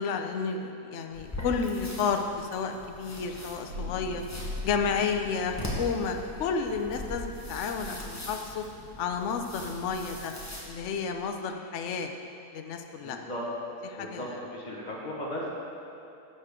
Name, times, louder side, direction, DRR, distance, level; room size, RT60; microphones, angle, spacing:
voice 1, 0.0-4.2 4.6-8.6 9.0-10.3 10.6-12.1 12.5-13.2 13.8-14.4, left 5 dB, 60° left, 5 dB, 0.8 m, -31 dB
sound 1, 1.1-10.6, left 1 dB, 10° left, 1.0 m, -41 dB
Thunder, 2.7-11.1, left 1 dB, 90° right, 1.7 m, -44 dB
voice 2, 12.9-13.4 13.9-15.5, equal, 30° left, -5 dB, 1.6 m, -37 dB
11.0 x 6.6 x 3.7 m, 2.9 s
omnidirectional pair, 1.7 m